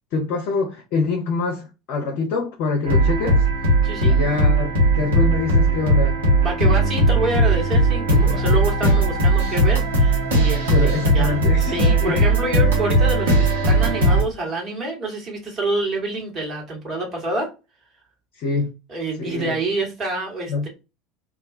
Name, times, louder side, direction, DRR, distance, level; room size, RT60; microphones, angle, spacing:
voice 1, 0.1-3.5 4.0-4.7 5.0-6.2 10.7-12.2 18.4-18.7 19.2-19.5 20.5-20.7, left 4 dB, 55° left, 0.6 m, -25 dB
sound 1, 2.8-14.2, right 1 dB, 70° right, 1.1 m, -18 dB
voice 2, 3.8-4.2 6.4-17.5 18.9-20.7, right 2 dB, 35° right, 1.3 m, -27 dB
2.4 x 2.2 x 2.5 m
figure-of-eight pair, 70°, 0 cm